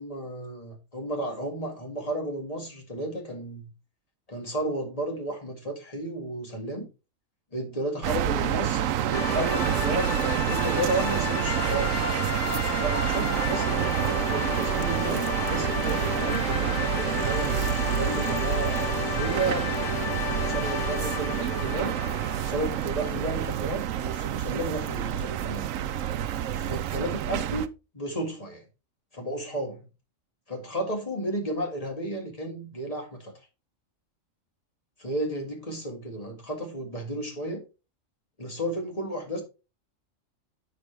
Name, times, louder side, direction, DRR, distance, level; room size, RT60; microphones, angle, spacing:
voice 1, 0.0-3.7 4.3-6.9 7.5-12.1 12.7-17.5 17.9-22.0 22.5-25.7 26.5-27.7 27.9-28.6 29.1-29.8 30.5-33.3 35.0-37.6 38.4-39.4, right 1 dB, 25° left, 2.0 m, -33 dB
sound 1, 8.0-27.7, right 10 dB, 75° right, 1.0 m, -28 dB
sound 2, 9.1-23.3, left 9 dB, 70° left, 1.0 m, -33 dB
8.0 x 6.6 x 3.3 m
omnidirectional pair, 1.4 m